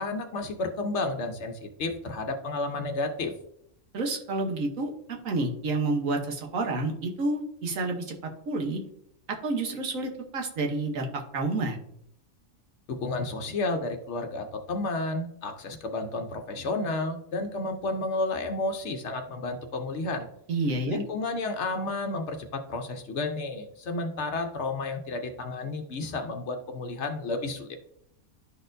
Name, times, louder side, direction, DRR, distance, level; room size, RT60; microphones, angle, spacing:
voice 1, 0.0-3.3 12.9-20.3 20.9-27.8, left 2 dB, 60° left, 5 dB, 0.9 m, -31 dB
voice 2, 3.9-8.1 8.5-8.8 9.3-11.8 20.5-21.0, right 2 dB, 70° right, 2 dB, 1.4 m, -29 dB
11.5 x 4.2 x 2.6 m, 0.72 s
omnidirectional pair, 1.5 m